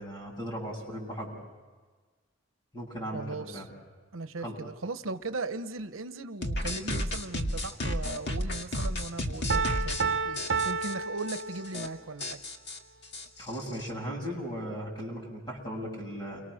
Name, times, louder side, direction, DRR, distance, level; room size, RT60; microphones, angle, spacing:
voice 1, 0.0-1.4 2.7-3.7 4.4-4.6 13.4-16.4, equal, 20° left, -2 dB, 7.8 m, -37 dB
voice 2, 3.1-3.7 4.1-12.4, right 3 dB, 90° right, 11 dB, 1.0 m, -38 dB
sound 1, 6.4-10.0 10.4-10.9 11.3-11.4 11.6-11.9 12.2-13.9, left 1 dB, 55° left, 2.1 m, -32 dB
Piano, 9.5-12.1, right 5 dB, 60° right, 0.7 m, -31 dB
29.5 x 24.5 x 6.5 m, 1.4 s
head